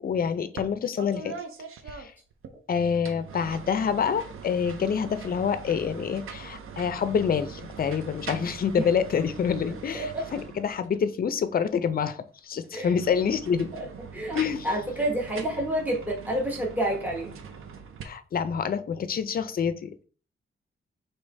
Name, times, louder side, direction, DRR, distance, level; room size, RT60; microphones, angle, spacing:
voice 1, 0.0-1.4 1.9-2.1 2.7-13.7 14.3-14.7 18.0-20.0, left 7 dB, 45° left, 12 dB, 0.4 m, -27 dB
sound 1, 0.6-0.7 1.0-2.5 2.9-11.0 12.8-18.0, right 6 dB, 80° right, 0.6 m, -42 dB
voice 2, 14.6-17.3, right 1 dB, 10° right, -2 dB, 1.1 m, -28 dB
4.8 x 2.9 x 3.2 m, 0.40 s
wide cardioid pair, 130°, 21 cm